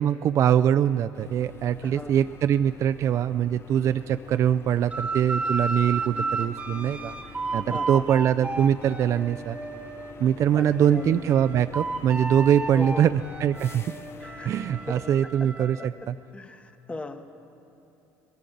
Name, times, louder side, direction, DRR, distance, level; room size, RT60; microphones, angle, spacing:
voice 1, 0.0-7.1 7.5-9.6 10.2-13.9 14.4-16.2, right 9 dB, 45° right, 10 dB, 0.3 m, -23 dB
sound 1, 1.1-15.3, left 5 dB, 35° left, 0.8 m, -45 dB
voice 2, 1.8-2.2 7.7-8.2 10.5-11.3 12.7-13.1 14.2-14.5 14.9-17.2, left 2 dB, 15° left, 8 dB, 1.1 m, -38 dB
sound 2, 4.9-10.2 10.6-15.9, right 3 dB, 15° right, 1.3 m, -33 dB
21.0 x 17.5 x 3.9 m, 2.9 s
supercardioid pair, 100°, 7 cm